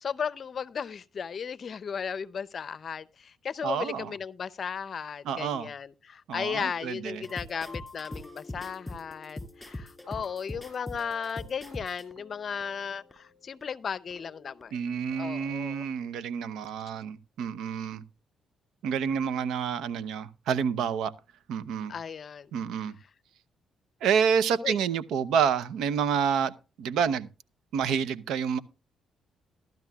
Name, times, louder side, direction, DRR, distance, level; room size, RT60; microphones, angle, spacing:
voice 1, 0.0-14.8 15.2-15.9 21.9-22.5 24.6-24.8, left 6 dB, 50° left, 0.6 m, -35 dB
voice 2, 3.6-4.1 5.2-5.7 6.3-7.3 14.7-18.0 18.8-21.1 21.5-21.9 22.5-23.0 24.0-26.5 26.8-27.3 27.7-28.6, right 7 dB, 80° right, 0.7 m, -28 dB
sound 1, 7.1-14.9 15.1-15.5, left 1 dB, 10° left, 5.1 m, -44 dB
15.5 x 12.0 x 2.4 m
cardioid pair, 90°, 0 cm